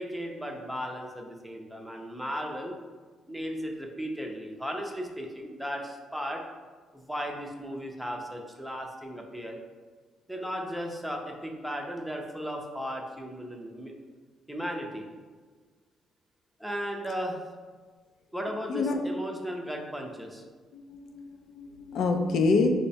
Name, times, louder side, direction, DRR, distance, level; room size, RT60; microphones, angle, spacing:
voice 1, 0.0-2.8 3.3-6.4 6.9-9.6 10.3-13.9 14.5-15.1 16.6-17.4 18.3-20.4, equal, ahead, 1 dB, 0.5 m, -36 dB
voice 2, 18.7-19.0 20.7-22.7, left 3 dB, 70° left, 4 dB, 0.4 m, -27 dB
4.5 x 2.1 x 2.7 m, 1.4 s
cardioid pair, 90°, 0 cm